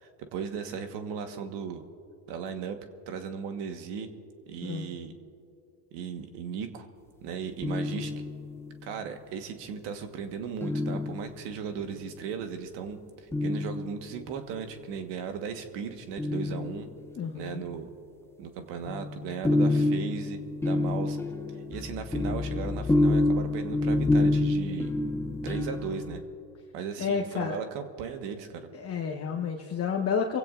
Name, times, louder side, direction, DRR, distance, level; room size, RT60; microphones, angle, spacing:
voice 1, 0.0-1.8 2.3-2.8 3.1-4.1 4.5-5.1 5.9-6.9 7.2-8.1 8.8-16.9 17.3-17.9 18.4-20.4 20.6-21.2 21.5-24.9 25.4-26.2 26.7-28.7, right 6 dB, 55° right, 6 dB, 1.5 m, -37 dB
sound 1, 7.6-8.7 10.6-11.7 13.3-14.4 16.2-17.2 18.9-26.2, left 2 dB, 5° left, 0.7 m, -28 dB
voice 2, 17.1-17.6 27.0-27.6 28.7-30.4, left 6 dB, 30° left, 1 dB, 1.2 m, -30 dB
28.5 x 16.0 x 2.6 m, 2.5 s
supercardioid pair, 105°, 48 cm